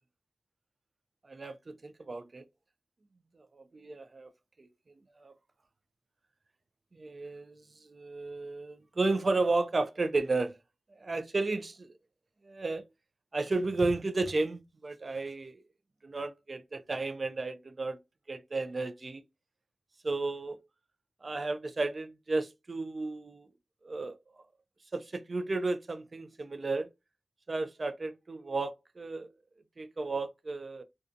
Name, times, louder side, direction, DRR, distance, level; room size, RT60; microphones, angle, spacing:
voice 1, 1.2-2.5 3.5-4.3 4.6-4.7 5.2-5.3 6.9-10.6 10.9-11.9 12.4-12.8 13.3-15.6 16.0-18.0 18.3-19.2 20.0-20.6 21.2-23.5 23.8-24.2 24.9-26.9 27.5-29.3 29.8-30.8, right 3 dB, 50° right, 0.3 m, -33 dB
2.4 x 2.2 x 2.4 m
cardioid pair, 60°, 0 cm